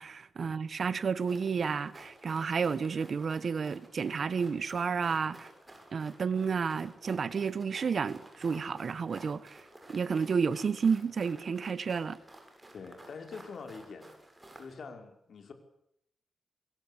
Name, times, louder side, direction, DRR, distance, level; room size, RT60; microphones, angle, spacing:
voice 1, 0.0-5.5 5.9-9.6 9.9-12.2, right 5 dB, 55° right, 1.4 m, -31 dB
sound 1, 1.2-14.7, right 1 dB, 15° right, 7.8 m, -53 dB
voice 2, 12.7-14.1 14.6-15.5, left 4 dB, 65° left, 5.4 m, -45 dB
25.5 x 22.0 x 8.7 m
wide cardioid pair, 120°, 0 cm